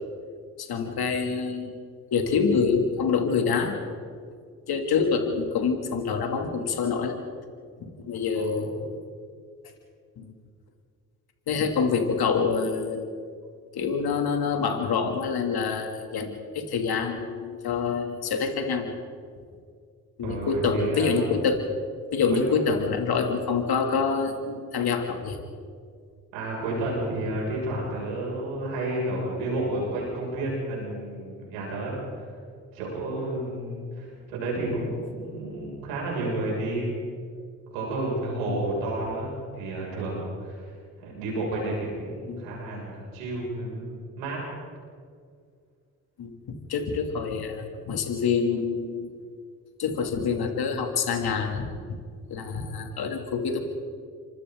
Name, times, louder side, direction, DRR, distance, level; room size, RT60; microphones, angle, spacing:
voice 1, 0.6-1.8 2.1-3.8 4.7-7.2 8.0-8.9 10.2-10.3 11.5-13.1 13.7-18.9 20.2-21.6 22.1-25.4 38.5-38.6 42.3-42.4 46.2-46.3 46.7-49.1 49.8-51.7 52.3-53.6, left 5 dB, 65° left, 4 dB, 3.0 m, -26 dB
voice 2, 8.3-8.7 20.2-21.3 22.3-22.4 26.3-32.4 32.7-37.0 37.7-43.8 44.2-44.4, right 2 dB, 90° right, -4 dB, 6.8 m, -31 dB
29.0 x 25.5 x 4.0 m, 2.1 s
hypercardioid pair, 40°, 41 cm